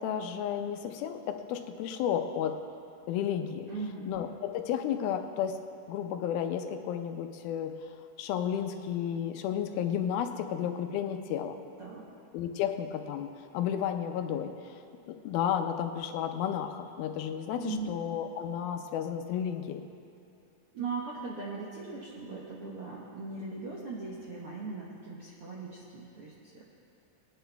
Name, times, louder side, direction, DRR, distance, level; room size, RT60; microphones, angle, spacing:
voice 1, 0.0-2.6 3.1-3.7 4.1-5.6 5.9-11.6 12.3-14.8 15.1-19.8, left 9 dB, 85° left, 7 dB, 2.5 m, -32 dB
voice 2, 3.6-4.1 11.8-12.1 17.6-18.0 20.7-26.6, right 4 dB, 70° right, -5 dB, 1.3 m, -39 dB
20.0 x 10.0 x 3.4 m, 2.6 s
omnidirectional pair, 4.2 m